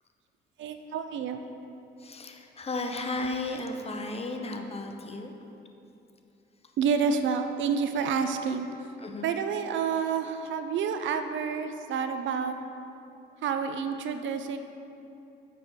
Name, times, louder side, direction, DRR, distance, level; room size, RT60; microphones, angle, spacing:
voice 1, 0.6-1.4 6.8-8.7 9.2-12.5 13.4-14.6, right 6 dB, 70° right, 8 dB, 0.5 m, -29 dB
voice 2, 2.0-5.3 9.0-9.3, left 2 dB, 30° left, 4 dB, 0.7 m, -34 dB
6.9 x 6.1 x 4.4 m, 2.8 s
cardioid pair, 90°, 20 cm